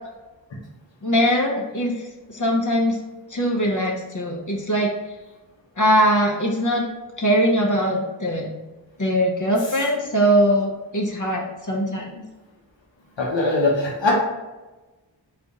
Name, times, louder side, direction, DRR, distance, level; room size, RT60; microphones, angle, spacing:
voice 1, 1.0-1.9 2.3-3.0 3.3-4.9 5.8-6.8 7.2-8.5 9.0-12.2, equal, 45° left, -2 dB, 0.7 m, -21 dB
voice 2, 13.2-14.1, left 2 dB, 80° left, -3 dB, 0.8 m, -21 dB
3.6 x 2.4 x 4.0 m, 1.1 s
wide cardioid pair, 40°, 44 cm